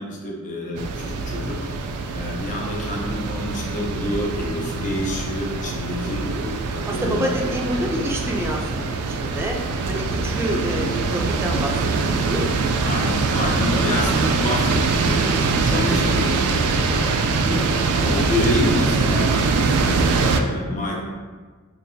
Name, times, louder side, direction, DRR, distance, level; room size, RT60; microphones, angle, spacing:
voice 1, 0.0-1.6 2.1-6.2 6.7-7.5 10.5-10.8 12.8-21.0, left 1 dB, 35° left, -2 dB, 0.6 m, -28 dB
sound 1, 0.8-20.4, right 4 dB, 85° right, 0.3 m, -23 dB
voice 2, 6.0-6.5 6.8-9.6 9.9-12.6 15.9-16.3, equal, 10° right, -1 dB, 0.4 m, -28 dB
5.4 x 2.4 x 2.2 m, 1.5 s
head